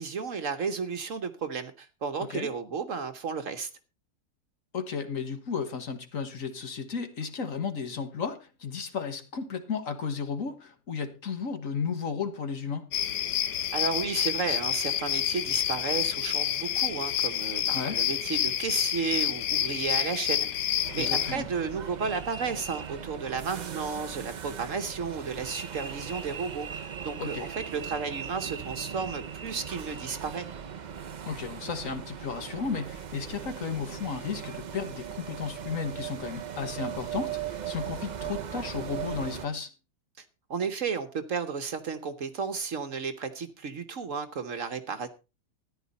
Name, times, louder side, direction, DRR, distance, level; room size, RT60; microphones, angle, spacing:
voice 1, 0.0-3.7 13.7-20.5 20.9-30.5 40.2-40.3 40.5-45.1, right 5 dB, 55° right, 1.2 m, -33 dB
voice 2, 4.7-12.9 17.7-18.0 21.0-21.5 27.2-27.5 31.2-39.7, left 5 dB, 55° left, 1.7 m, -34 dB
sound 1, 12.9-21.4, left 11 dB, 80° left, 1.4 m, -28 dB
sound 2, 20.8-39.5, right 8 dB, 70° right, 0.4 m, -39 dB
14.0 x 10.5 x 4.1 m
omnidirectional pair, 1.8 m